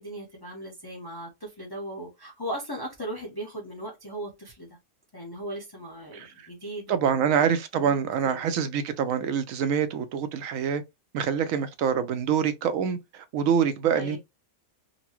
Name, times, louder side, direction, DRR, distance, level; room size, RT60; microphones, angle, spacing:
voice 1, 0.0-4.8 5.1-8.0 8.2-8.5 13.9-14.2, right 1 dB, 20° left, 0.7 m, -38 dB
voice 2, 6.1-6.5 6.9-10.8 11.1-14.2, right 7 dB, 70° right, 0.9 m, -26 dB
4.0 x 2.2 x 2.9 m
omnidirectional pair, 1.6 m